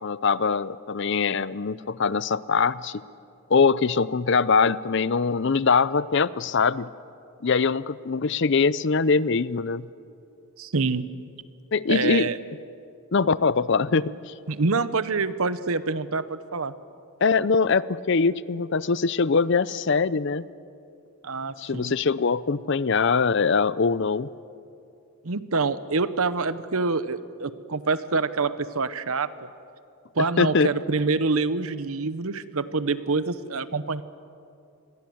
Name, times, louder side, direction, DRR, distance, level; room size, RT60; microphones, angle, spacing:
voice 1, 0.0-3.0 3.5-6.9 7.4-9.9 11.7-12.3 13.1-14.3 17.2-20.5 21.6-24.3 30.4-30.7, left 5 dB, 55° left, 18 dB, 0.5 m, -22 dB
voice 2, 10.6-11.1 11.9-12.4 14.5-16.7 21.2-22.0 25.2-29.5 30.1-34.0, right 4 dB, 75° right, 14 dB, 0.9 m, -26 dB
27.5 x 21.5 x 7.8 m, 2.6 s
head